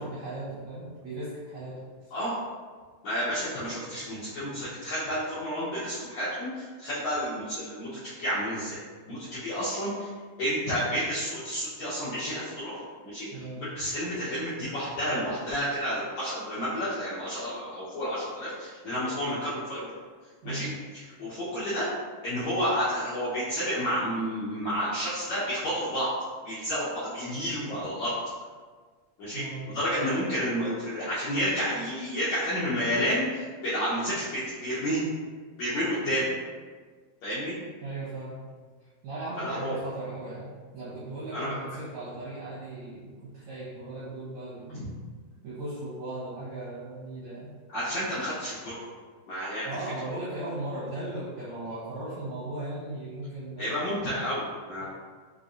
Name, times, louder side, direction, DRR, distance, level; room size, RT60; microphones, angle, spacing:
voice 1, 0.0-1.8 2.0-2.1 13.3-13.7 20.4-20.7 29.3-29.7 37.8-38.4 39.0-44.8 45.4-47.6 49.7-53.9, right 2 dB, 70° right, -10 dB, 1.7 m, -37 dB
voice 2, 3.0-8.8 9.1-10.1 10.4-12.8 13.0-19.9 20.4-21.9 22.2-26.1 26.4-28.1 29.2-35.0 35.6-36.3 37.2-37.5 39.4-39.7 41.3-41.6 44.7-44.9 47.7-48.8 49.3-49.7 53.6-54.8, equal, 75° left, -11 dB, 1.6 m, -30 dB
5.7 x 3.3 x 2.6 m, 1.5 s
omnidirectional pair, 4.6 m